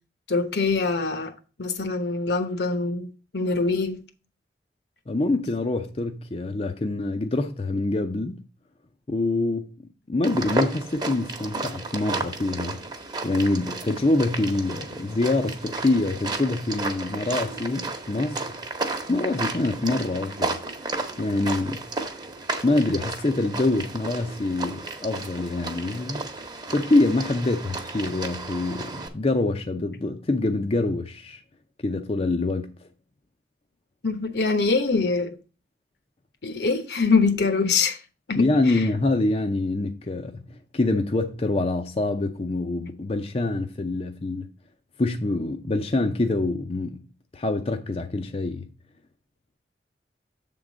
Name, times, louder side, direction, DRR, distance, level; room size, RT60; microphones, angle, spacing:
voice 1, 0.3-1.3 1.6-3.1 3.3-4.0 34.0-35.3 36.4-38.0 38.3-38.5 38.7-38.8, left 4 dB, 70° left, 1.1 m, -23 dB
voice 2, 5.1-8.4 9.1-12.8 13.2-18.4 19.1-20.6 21.2-21.8 22.6-26.2 26.7-31.4 31.8-32.7 38.3-44.5 45.0-47.0 47.3-48.7, left 2 dB, 35° left, 0.6 m, -25 dB
sound 1, 10.2-29.1, right 3 dB, 25° right, 1.0 m, -33 dB
7.5 x 3.8 x 6.1 m
head